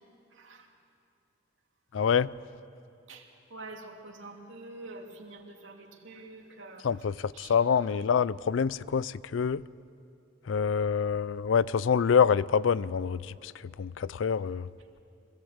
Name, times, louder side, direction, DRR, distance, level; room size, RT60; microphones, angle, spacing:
voice 1, 0.3-0.7 3.1-6.8 7.3-7.6 7.9-8.0, right 2 dB, 85° right, 1 dB, 2.7 m, -46 dB
voice 2, 1.9-2.3 6.8-9.6 10.5-13.5 13.8-14.7, left 6 dB, 90° left, 19 dB, 0.4 m, -26 dB
25.0 x 17.0 x 8.0 m, 2.6 s
head